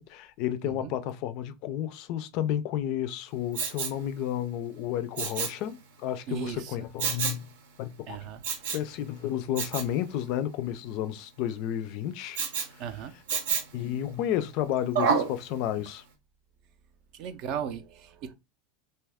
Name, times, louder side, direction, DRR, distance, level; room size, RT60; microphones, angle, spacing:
voice 1, 0.0-7.5 7.8-8.3 8.7-12.4 13.7-16.0, left 11 dB, 50° left, 0.3 m, -32 dB
Respiratory sounds, 3.5-4.0 5.2-5.6 7.0-7.4 8.4-8.9 9.6-9.9 12.3-12.7 13.3-13.8 14.9-15.3 15.9-16.0, right 6 dB, 75° right, 0.7 m, -28 dB
voice 2, 6.3-6.8 8.1-8.4 12.8-13.1 17.1-18.3, right 7 dB, 45° right, 0.4 m, -36 dB
2.6 x 2.2 x 3.4 m
supercardioid pair, 155°, 0 cm